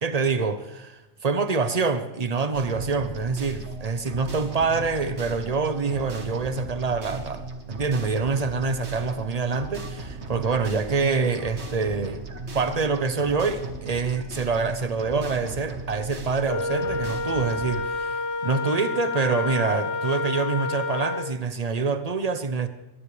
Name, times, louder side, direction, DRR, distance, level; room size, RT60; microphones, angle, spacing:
voice 1, 0.0-12.2 12.5-22.7, right 4 dB, 35° right, 1.0 m, -26 dB
sound 1, 2.5-17.8, right 3 dB, 70° right, 1.8 m, -37 dB
Wind instrument woodwind instrument, 16.4-21.3, left 3 dB, 85° left, 1.3 m, -29 dB
22.5 x 18.0 x 3.3 m
omnidirectional pair, 1.2 m